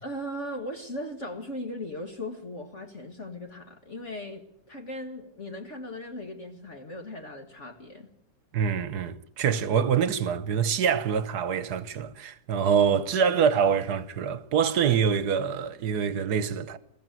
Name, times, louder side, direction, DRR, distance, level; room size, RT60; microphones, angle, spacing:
voice 1, 0.0-8.1 12.7-12.9, left 1 dB, 40° left, 2.0 m, -38 dB
voice 2, 8.5-16.8, right 7 dB, 65° right, 1.5 m, -25 dB
22.0 x 15.5 x 9.2 m
omnidirectional pair, 2.0 m